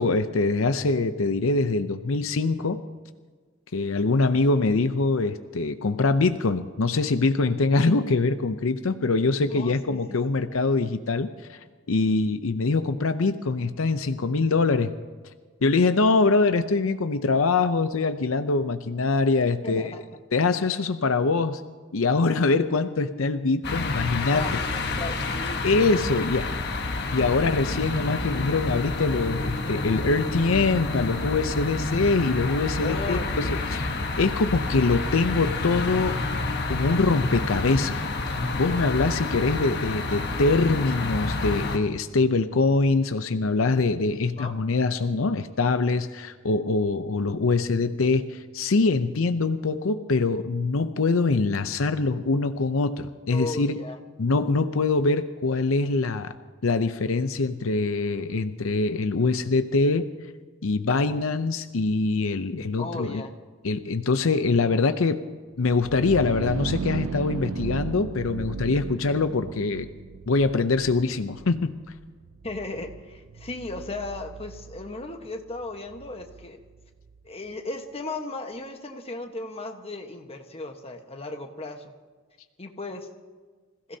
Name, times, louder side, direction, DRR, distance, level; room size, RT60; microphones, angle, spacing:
voice 1, 0.0-2.8 3.7-11.6 11.9-14.9 15.6-19.9 20.3-21.6 21.9-24.4 25.6-26.5 27.1-33.9 34.2-36.2 36.7-53.7 54.2-56.3 56.6-60.1 60.6-63.2 63.6-65.2 65.6-69.9 70.3-71.7, left 3 dB, 75° left, 9 dB, 0.7 m, -24 dB
voice 2, 9.5-10.0 19.6-20.0 24.3-26.7 32.8-33.6 44.3-44.6 53.3-54.0 62.8-63.3 72.4-76.6 77.2-81.9 82.6-83.1, left 2 dB, 30° left, 4 dB, 1.3 m, -36 dB
sound 1, 23.6-41.8, left 2 dB, 55° left, 1.3 m, -29 dB
sound 2, 65.6-77.2, right 5 dB, 80° right, 0.5 m, -36 dB
26.5 x 16.0 x 2.8 m, 1.5 s
head